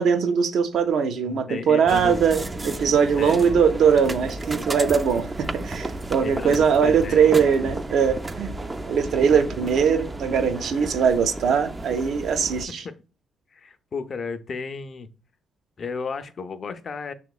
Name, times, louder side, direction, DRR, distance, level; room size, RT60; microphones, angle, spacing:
voice 1, 0.0-8.5 8.9-12.8, right 6 dB, 70° right, 0.5 m, -21 dB
voice 2, 1.2-2.2 3.1-3.6 6.2-7.4 9.3-9.4 12.8-13.0 13.5-15.1 15.8-17.1, left 5 dB, 45° left, 0.4 m, -34 dB
sound 1, 1.9-12.7, right 2 dB, 20° right, 0.3 m, -33 dB
5.8 x 2.9 x 2.3 m
cardioid pair, 90°, 0 cm